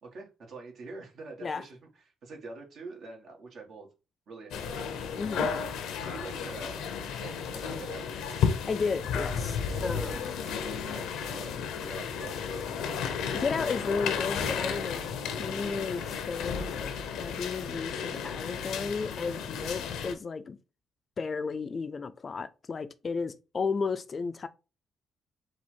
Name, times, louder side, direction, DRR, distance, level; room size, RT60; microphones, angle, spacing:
voice 1, 0.0-3.9 4.3-5.0 5.3-8.1 9.6-13.0, right 3 dB, 65° right, 1.7 m, -45 dB
sound 1, 4.5-20.1, left 6 dB, 85° left, 0.7 m, -33 dB
voice 2, 8.7-10.2 13.3-16.9 17.2-20.6 21.2-24.5, left 4 dB, 40° left, 0.4 m, -33 dB
4.2 x 2.5 x 4.5 m
cardioid pair, 90°, 0 cm